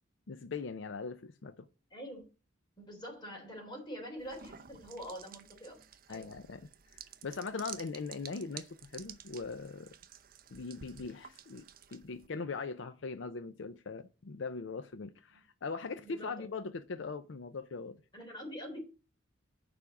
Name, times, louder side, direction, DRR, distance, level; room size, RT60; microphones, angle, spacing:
voice 1, 0.3-1.7 6.1-6.6 6.9-9.9 10.5-11.6 11.9-18.0, left 4 dB, 70° left, 0.5 m, -40 dB
voice 2, 1.9-2.2 2.8-5.8 6.1-6.3 16.0-16.5 18.1-18.8, equal, 20° left, 3.4 m, -45 dB
sound 1, 4.2-12.3, right 9 dB, 45° right, 0.7 m, -52 dB
6.9 x 5.0 x 7.0 m
head